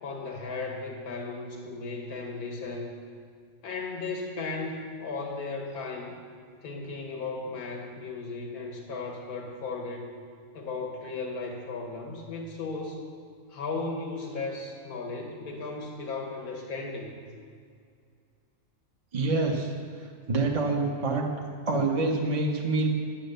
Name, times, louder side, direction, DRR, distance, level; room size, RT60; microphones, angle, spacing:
voice 1, 0.0-3.0 3.6-6.1 6.6-10.1 10.5-13.1 13.5-17.2, left 3 dB, 90° left, 1 dB, 1.9 m, -36 dB
voice 2, 19.1-19.7 20.3-21.3 21.7-22.9, right 3 dB, 25° right, 0 dB, 1.1 m, -26 dB
11.0 x 9.2 x 6.8 m, 2.2 s
omnidirectional pair, 1.5 m